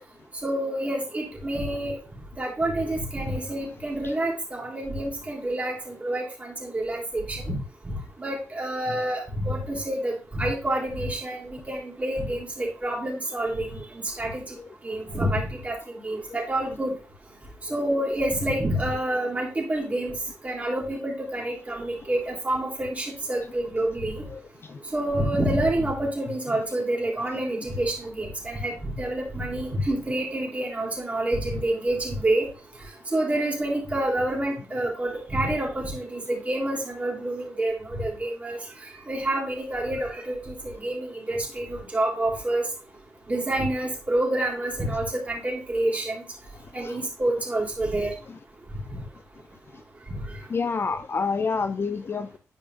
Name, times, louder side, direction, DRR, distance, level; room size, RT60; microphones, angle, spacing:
voice 1, 0.4-1.9 2.4-7.6 7.8-7.9 8.2-13.8 14.2-14.4 14.8-16.9 17.7-20.1 20.4-24.2 24.9-32.4 33.1-38.6 39.1-42.6 43.3-46.2 46.7-48.1, right 1 dB, 25° right, 3.4 m, -28 dB
voice 2, 24.3-24.8 46.8-47.0 48.3-48.4 50.5-52.4, left 5 dB, 45° left, 0.5 m, -29 dB
10.5 x 5.0 x 2.5 m
wide cardioid pair, 105°, 6 cm